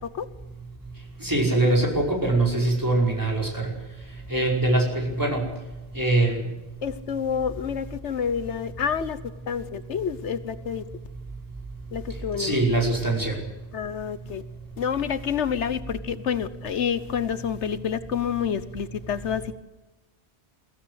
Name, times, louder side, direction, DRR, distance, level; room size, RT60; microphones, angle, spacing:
voice 1, 1.2-3.7 4.3-5.4 5.9-6.4 12.4-13.4, right 2 dB, 15° right, 5.3 m, -23 dB
voice 2, 6.8-9.2 9.5-10.8 11.9-12.6 13.7-14.4 14.8-19.5, left 7 dB, 85° left, 1.3 m, -28 dB
22.5 x 15.5 x 8.2 m
omnidirectional pair, 1.2 m